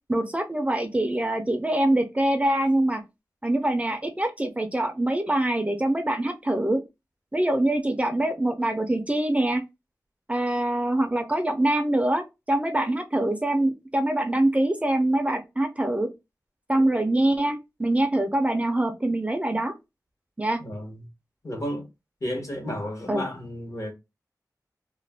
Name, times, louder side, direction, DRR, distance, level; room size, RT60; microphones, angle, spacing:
voice 1, 0.1-3.0 3.4-6.8 7.3-9.6 10.3-16.1 16.7-19.7 20.4-20.6 23.1-23.3, right 1 dB, 20° right, 0.4 m, -24 dB
voice 2, 20.6-21.0 21.4-21.9 22.2-23.9, equal, 50° left, 1.0 m, -32 dB
2.4 x 2.1 x 3.3 m
wide cardioid pair, 80°, 7 cm